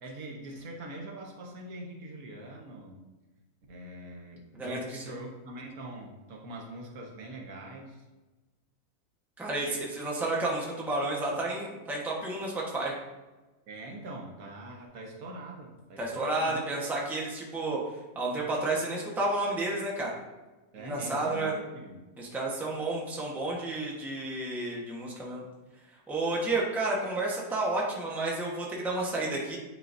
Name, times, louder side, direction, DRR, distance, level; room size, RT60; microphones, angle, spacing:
voice 1, 0.0-3.0 3.7-8.0 13.7-16.6 20.7-22.0, right 1 dB, 75° right, 0 dB, 1.4 m, -43 dB
voice 2, 4.6-5.0 9.4-12.9 16.0-17.8 18.1-20.1 20.8-21.5 22.2-25.4 26.1-29.6, right 2 dB, ahead, -4 dB, 0.9 m, -31 dB
9.7 x 3.9 x 2.6 m, 1.1 s
omnidirectional pair, 1.5 m